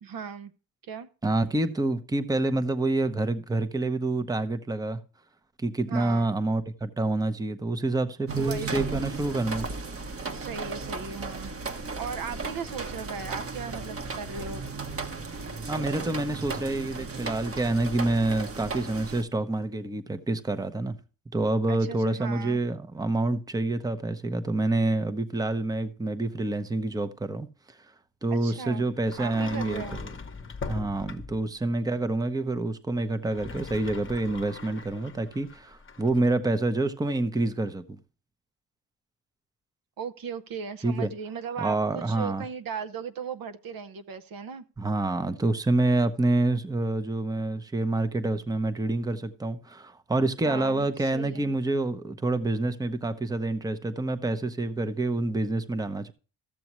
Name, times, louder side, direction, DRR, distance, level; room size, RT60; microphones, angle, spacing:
voice 1, 0.0-0.5 0.8-1.1 5.9-6.3 8.4-9.1 10.3-14.7 21.7-22.6 28.3-28.9 29.2-30.0 40.0-44.6 50.4-51.6, right 6 dB, 55° right, 0.8 m, -37 dB
voice 2, 1.2-5.0 5.6-9.7 15.7-21.0 21.3-27.8 28.2-30.1 30.7-38.0 40.8-41.1 41.6-42.4 44.8-56.1, right 2 dB, 10° right, 0.8 m, -27 dB
sound 1, 8.3-19.2, right 4 dB, 35° right, 1.1 m, -35 dB
Sliding door, 29.0-31.5 33.1-36.3, left 4 dB, 30° left, 1.0 m, -40 dB
13.5 x 7.0 x 3.0 m
cardioid pair, 75°, 42 cm